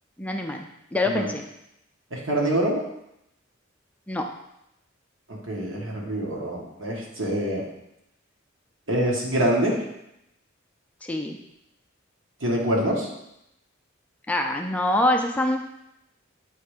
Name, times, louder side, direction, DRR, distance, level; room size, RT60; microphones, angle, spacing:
voice 1, 0.2-1.5 4.1-4.3 11.0-11.4 14.3-15.6, left 1 dB, 5° left, 3 dB, 0.4 m, -25 dB
voice 2, 2.1-2.8 5.3-7.6 8.9-9.8 12.4-13.1, right 1 dB, 70° right, -2 dB, 1.7 m, -25 dB
8.0 x 3.3 x 5.0 m, 0.82 s
head